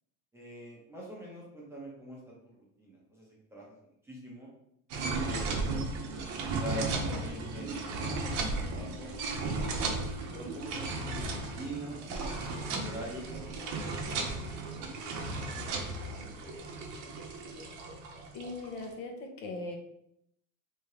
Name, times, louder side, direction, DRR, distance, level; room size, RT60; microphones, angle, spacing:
voice 1, 0.3-3.6 4.0-4.5 5.0-5.7 6.1-6.2 6.6-6.9 7.2-9.7 10.3-12.0 12.4-14.5 14.8-14.9 15.3-16.2, right 1 dB, 5° right, -5 dB, 0.6 m, -44 dB
sound 1, 4.9-18.9, right 3 dB, 50° right, 0.7 m, -35 dB
voice 2, 18.3-19.8, left 3 dB, 65° left, 3 dB, 0.8 m, -39 dB
3.4 x 2.7 x 3.2 m, 0.74 s
cardioid pair, 165°, 37 cm